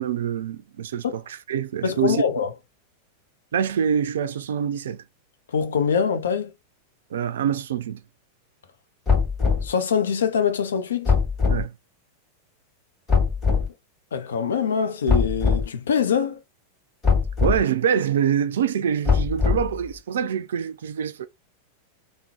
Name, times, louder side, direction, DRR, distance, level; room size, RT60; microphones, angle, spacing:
voice 1, 0.0-2.2 3.5-5.0 7.1-8.0 11.5-11.7 17.4-21.3, right 8 dB, 60° right, 0.4 m, -25 dB
voice 2, 1.8-2.5 5.5-6.5 9.6-11.1 14.1-16.4, left 6 dB, 65° left, 0.6 m, -23 dB
sound 1, 9.1-9.7 11.1-11.6 13.1-13.7 15.1-15.7 17.0-17.6 19.1-19.8, left 5 dB, 20° left, 1.9 m, -21 dB
3.6 x 2.1 x 2.9 m
figure-of-eight pair, 90°, 0 cm